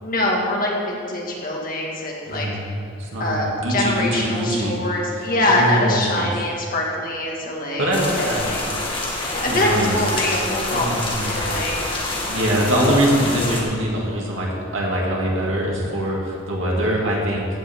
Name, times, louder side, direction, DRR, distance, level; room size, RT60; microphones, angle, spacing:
voice 1, 0.0-2.5 3.2-7.9 8.2-8.7 9.3-11.0 11.2-11.8, left 1 dB, 45° left, -2 dB, 1.9 m, -24 dB
voice 2, 2.3-2.7 3.0-4.8 5.1-6.3 7.8-8.5 8.9-9.0 9.5-9.9 10.7-11.4 12.3-14.5 14.7-17.5, equal, 75° right, -3 dB, 2.5 m, -23 dB
sound 1, 7.9-13.6, left 2 dB, 25° left, 1.6 m, -27 dB
15.5 x 8.9 x 3.7 m, 2.4 s
head